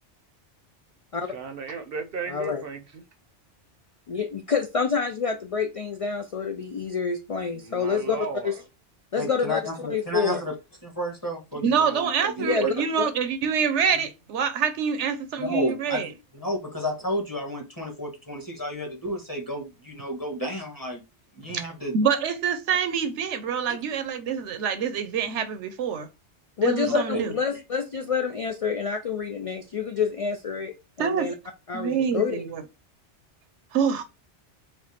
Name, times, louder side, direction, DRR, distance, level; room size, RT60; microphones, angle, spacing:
voice 1, 1.3-3.1 7.5-8.6, right 5 dB, 60° right, 0.8 m, -35 dB
voice 2, 2.3-2.6 4.1-8.6 9.1-9.6 9.9-10.4 12.4-13.1 26.6-31.3 31.7-32.4, left 5 dB, 55° left, 0.3 m, -27 dB
voice 3, 9.2-10.5 10.8-12.8 15.4-21.0 21.3-21.9 27.1-27.2, equal, 15° left, 1.4 m, -32 dB
voice 4, 11.6-16.1 21.5-21.6 21.9-26.1 26.6-27.3 31.0-31.3 31.7-32.6 33.7-34.1, right 7 dB, 80° right, 1.0 m, -26 dB
4.5 x 2.3 x 4.2 m
omnidirectional pair, 1.2 m